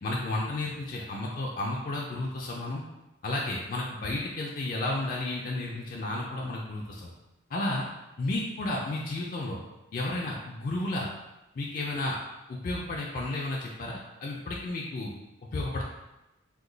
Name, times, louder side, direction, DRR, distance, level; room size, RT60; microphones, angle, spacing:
voice 1, 0.0-2.8 3.2-7.1 7.5-7.9 8.2-9.6 9.9-11.1 11.5-12.2 12.5-15.1 15.5-15.8, left 2 dB, 45° left, -3 dB, 0.3 m, -32 dB
2.9 x 2.2 x 3.8 m, 0.98 s
head